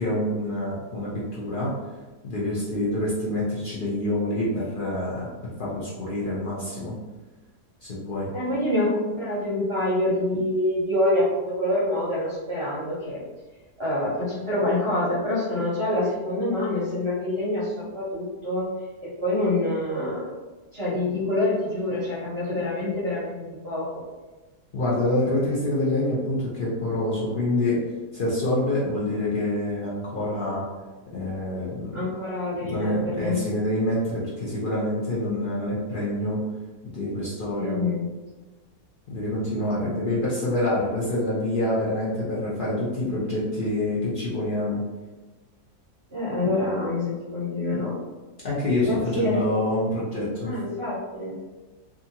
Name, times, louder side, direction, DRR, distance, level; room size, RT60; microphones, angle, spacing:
voice 1, 0.0-1.7 2.2-5.3 5.6-7.0 7.8-8.3 24.7-27.8 28.1-30.7 31.1-32.0 32.6-36.4 36.8-37.8 39.1-44.8 48.4-50.5, left 1 dB, 65° left, -8 dB, 0.5 m, -26 dB
voice 2, 8.3-13.2 13.8-18.7 19.0-20.3 20.7-24.0 31.9-33.5 37.6-38.1 46.1-48.0 48.8-49.5 50.4-51.4, left 1 dB, 45° right, -9 dB, 0.9 m, -26 dB
2.7 x 2.5 x 2.7 m, 1.2 s
omnidirectional pair, 1.7 m